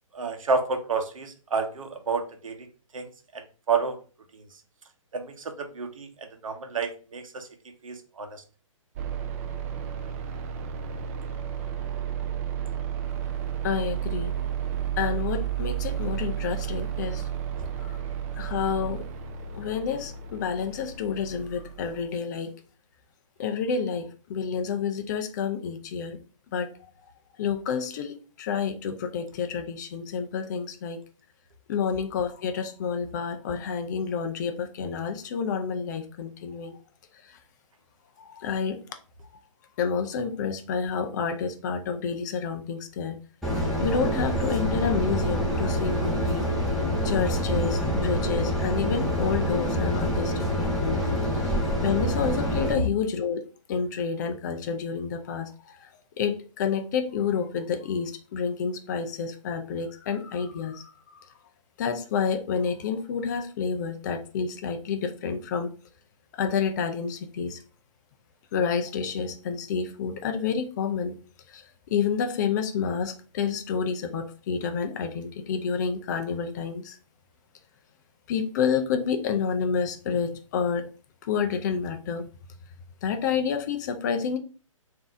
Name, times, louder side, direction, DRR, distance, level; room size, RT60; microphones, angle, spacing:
voice 1, 0.1-2.7 2.9-4.0 4.3-4.4 5.1-6.1 6.4-7.5 7.8-8.4 52.8-52.9, right 4 dB, 75° right, 6 dB, 0.9 m, -30 dB
sound 1, 9.0-22.0, right 9 dB, 30° right, 0.4 m, -32 dB
voice 2, 13.6-14.3 15.0-17.3 17.8-18.0 18.4-19.1 19.5-22.5 23.4-26.2 26.5-26.7 27.4-31.0 31.7-36.8 37.3-37.4 38.2-38.8 39.8-43.2 43.8-46.5 47.0-51.0 51.8-53.4 53.7-55.5 55.8-55.9 56.2-60.8 61.8-65.7 66.3-67.6 68.5-71.1 71.5-71.6 71.9-77.0 78.3-80.9 81.3-82.2 83.0-84.4, left 6 dB, 35° left, 7 dB, 0.5 m, -29 dB
sound 2, 43.4-52.7, equal, ahead, 0.9 m, -26 dB
3.8 x 2.7 x 3.5 m, 0.37 s
hypercardioid pair, 145°, 17 cm